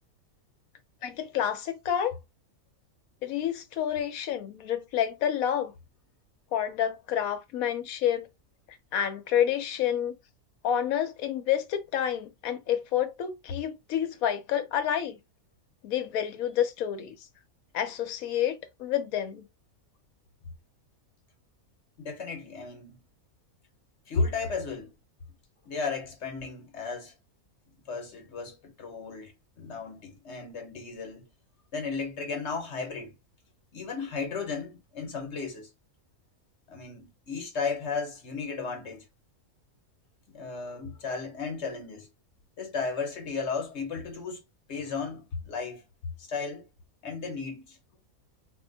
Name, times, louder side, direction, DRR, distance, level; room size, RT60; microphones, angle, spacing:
voice 1, 1.0-2.2 3.2-5.7 6.5-8.3 8.7-10.2 10.6-15.2 15.8-17.2 17.7-19.4, left 9 dB, 75° left, 1.1 m, -29 dB
voice 2, 22.0-23.0 24.1-24.9 25.6-27.1 27.9-31.3 31.7-33.1 33.7-35.7 36.7-39.1 40.3-42.1 42.6-44.4 44.7-45.8 46.2-46.7 47.0-47.8, left 4 dB, 55° left, 1.1 m, -34 dB
2.7 x 2.3 x 3.9 m
omnidirectional pair, 1.5 m